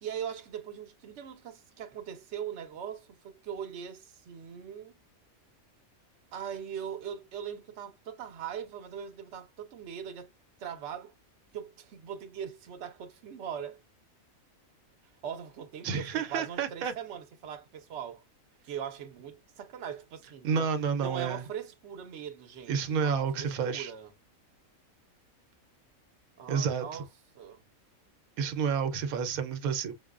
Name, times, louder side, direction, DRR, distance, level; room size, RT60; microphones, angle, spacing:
voice 1, 0.0-5.0 6.3-10.3 10.6-11.1 11.5-13.8 15.2-18.2 18.6-24.1 26.4-27.1 27.3-27.6, right 8 dB, 60° right, 1.0 m, -40 dB
voice 2, 15.8-16.9 20.4-21.4 22.7-23.9 26.5-27.0 28.4-29.9, right 6 dB, 85° right, 1.1 m, -30 dB
5.7 x 2.1 x 2.4 m
omnidirectional pair, 1.5 m